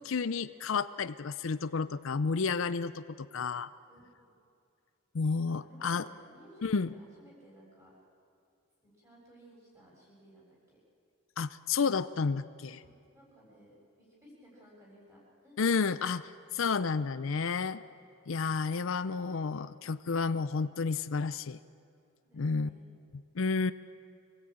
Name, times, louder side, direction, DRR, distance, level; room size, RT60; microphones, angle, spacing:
voice 1, 0.1-3.7 5.1-6.1 6.6-6.9 11.4-12.8 15.6-17.8 18.3-21.6 22.3-22.7 23.3-23.7, left 5 dB, 70° left, 13 dB, 0.5 m, -31 dB
voice 2, 3.9-4.3 5.3-8.0 8.8-10.8 12.8-15.7 22.2-22.9, equal, 15° right, -4 dB, 7.2 m, -58 dB
25.5 x 18.0 x 8.7 m, 2.5 s
head